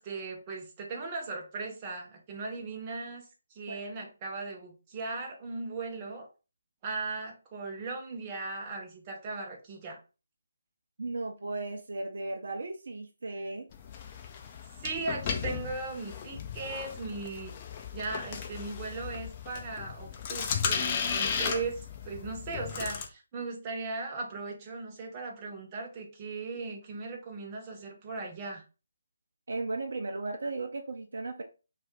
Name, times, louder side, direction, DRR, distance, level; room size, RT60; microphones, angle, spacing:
voice 1, 0.0-3.2 3.5-6.3 6.8-10.0 14.8-17.5 17.9-28.6, right 3 dB, 25° right, 1 dB, 0.7 m, -38 dB
voice 2, 11.0-13.7 29.5-31.4, right 2 dB, 60° right, 5 dB, 0.5 m, -36 dB
sound 1, 13.7-23.1, left 6 dB, 30° left, 0.4 m, -35 dB
2.3 x 2.3 x 3.7 m, 0.32 s
figure-of-eight pair, 145°, 0 cm